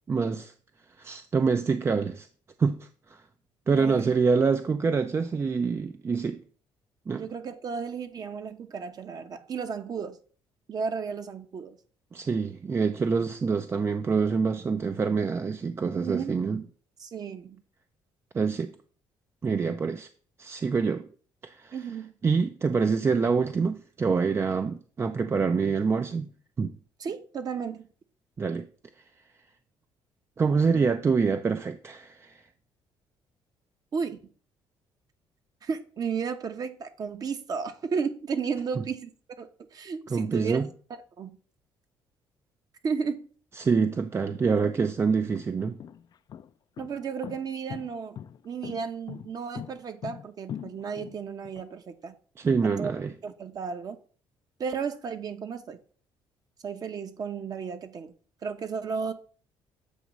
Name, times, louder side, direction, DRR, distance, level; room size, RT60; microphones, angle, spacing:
voice 1, 0.1-0.5 1.0-2.3 2.6-2.8 3.1-3.2 3.7-6.4 7.1-7.3 12.1-16.6 18.3-18.7 19.4-20.1 20.4-21.1 21.4-21.8 22.2-26.3 26.6-26.8 28.4-28.7 30.4-32.4 40.1-40.7 43.6-45.8 52.4-53.1, right 5 dB, 30° right, 0.4 m, -26 dB
voice 2, 3.7-4.2 7.1-10.2 10.7-11.8 15.9-16.4 17.0-17.6 21.7-22.1 27.0-27.9 33.9-34.2 35.6-39.1 39.4-40.6 41.2-41.4 42.8-43.3 46.8-48.2 48.4-52.1 52.6-52.9 53.2-54.0 54.6-55.8 56.6-58.1 58.4-59.1, right 6 dB, 45° right, 1.0 m, -33 dB
sound 1, 44.3-44.4 45.1-51.6, left 9 dB, 50° left, 0.4 m, -41 dB
8.0 x 3.0 x 6.1 m
cardioid pair, 105°, 9 cm